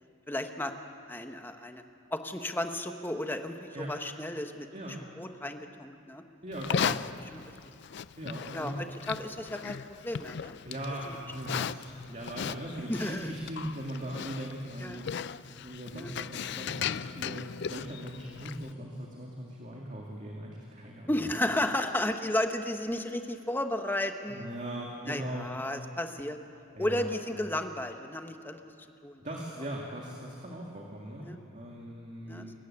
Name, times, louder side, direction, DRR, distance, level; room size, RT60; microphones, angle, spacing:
voice 1, 0.3-0.7 1.1-1.8 2.1-6.2 6.7-6.9 7.3-7.4 8.5-10.6 11.0-11.2 11.5-11.6 12.9-13.3 14.8-15.0 15.9-16.1 21.1-24.5 25.0-26.4 26.8-28.6 29.0-29.2 31.2-31.4 32.3-32.5, left 1 dB, 10° left, 6 dB, 1.1 m, -33 dB
voice 2, 6.4-7.0 8.2-8.9 10.7-15.1 15.6-21.1 24.3-25.5 26.7-27.1 29.2-32.5, right 1 dB, 40° right, -2 dB, 2.2 m, -39 dB
Livestock farm animals working animals, 6.5-18.7, left 7 dB, 60° left, 0.4 m, -37 dB
23.5 x 15.0 x 9.8 m, 2.6 s
head